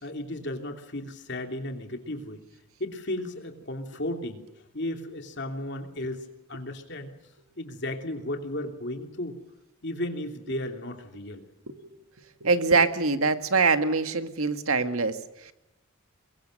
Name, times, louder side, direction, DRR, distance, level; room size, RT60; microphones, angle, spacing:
voice 1, 0.0-2.4 2.8-4.4 4.7-7.1 7.6-9.4 9.8-11.4, left 1 dB, 50° left, 4 dB, 3.0 m, -34 dB
voice 2, 12.4-15.5, right 4 dB, 75° right, 8 dB, 1.8 m, -24 dB
23.5 x 22.5 x 6.6 m, 0.96 s
head